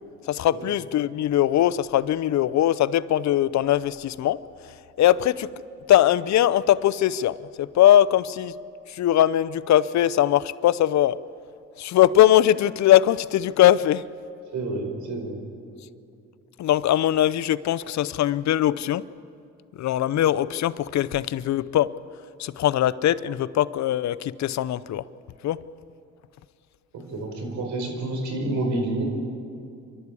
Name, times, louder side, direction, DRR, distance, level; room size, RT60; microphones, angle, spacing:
voice 1, 0.3-4.4 4.6-4.7 5.0-5.5 5.9-8.5 8.9-11.2 11.8-14.0 16.6-19.0 19.8-21.9 22.4-25.1 25.4-25.6, left 12 dB, 65° left, 17 dB, 0.7 m, -21 dB
voice 2, 14.5-15.4 26.9-29.0, right 2 dB, 75° right, 3 dB, 5.0 m, -29 dB
28.0 x 12.5 x 8.5 m, 2.4 s
cardioid pair, 90°, 30 cm